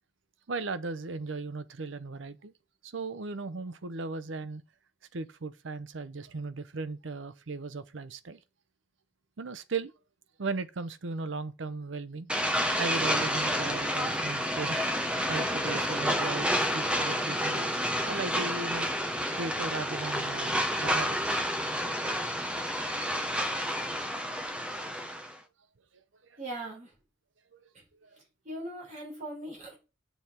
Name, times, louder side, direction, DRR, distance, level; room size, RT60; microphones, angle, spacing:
voice 1, 0.5-2.5 2.8-4.6 5.1-8.4 9.4-9.9 10.4-12.3 12.8-14.8 15.3-17.7 18.0-18.9 19.4-21.2 26.3-26.4 27.5-27.6 28.0-28.2, right 3 dB, 80° right, 0.7 m, -37 dB
sound 1, 12.3-25.3, equal, 5° right, 0.7 m, -30 dB
voice 2, 26.4-26.9 28.4-29.9, right 1 dB, 40° right, 4.1 m, -39 dB
9.4 x 5.6 x 4.3 m
head